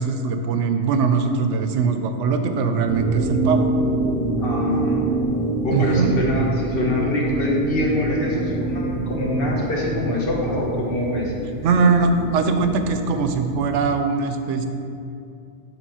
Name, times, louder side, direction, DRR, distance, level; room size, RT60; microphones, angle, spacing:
voice 1, 0.0-3.7 5.7-6.1 11.6-14.7, right 4 dB, 85° right, 7 dB, 0.9 m, -21 dB
sound 1, 2.9-13.8, right 2 dB, 55° right, 0.8 m, -26 dB
voice 2, 4.4-5.1 5.6-11.3, left 1 dB, 55° left, -3 dB, 1.2 m, -24 dB
6.0 x 3.9 x 5.5 m, 2.6 s
omnidirectional pair, 1.2 m